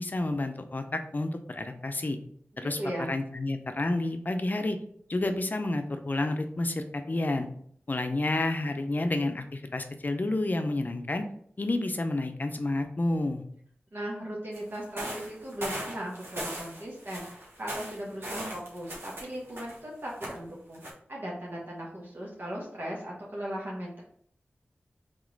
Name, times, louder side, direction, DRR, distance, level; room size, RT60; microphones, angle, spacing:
voice 1, 0.0-2.2 2.6-2.8 3.1-4.8 5.1-7.5 7.9-11.2 11.6-13.4, left 2 dB, 45° left, 7 dB, 0.6 m, -30 dB
voice 2, 2.6-3.1 13.9-20.8 21.1-24.0, equal, 55° right, -4 dB, 1.1 m, -37 dB
sound 1, 14.5-19.8 20.1-20.4 20.7-20.9, right 1 dB, 70° right, 1.4 m, -39 dB
3.7 x 3.0 x 3.9 m, 0.63 s
cardioid pair, 45°, 4 cm